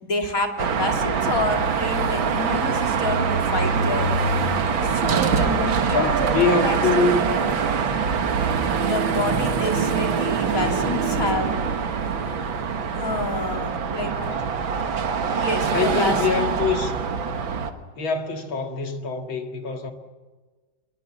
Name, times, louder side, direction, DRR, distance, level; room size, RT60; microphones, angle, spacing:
voice 1, 0.0-4.1 4.8-7.4 8.8-11.6 13.0-14.1 15.4-16.4, left 2 dB, 45° left, 3.2 m, -28 dB
Car passing by / Traffic noise roadway noise / Engine, 0.6-17.7, right 5 dB, 80° right, 2.2 m, -24 dB
voice 2, 5.9-7.2 14.0-14.5 15.7-16.9 17.9-19.9, left 4 dB, 90° left, 2.8 m, -24 dB
25.0 x 22.0 x 7.4 m
omnidirectional pair, 2.1 m